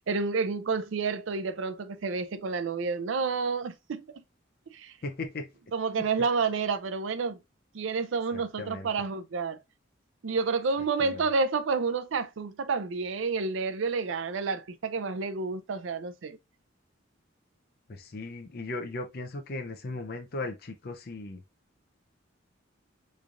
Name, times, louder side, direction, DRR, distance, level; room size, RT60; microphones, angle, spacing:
voice 1, 0.1-4.2 4.7-4.9 5.7-7.4 7.7-9.6 10.2-16.4, right 4 dB, 75° right, 0.4 m, -29 dB
voice 2, 5.0-5.5 6.0-6.1 8.3-8.9 11.0-11.3 17.9-21.4, left 2 dB, 50° left, 0.5 m, -37 dB
3.7 x 3.2 x 2.5 m
head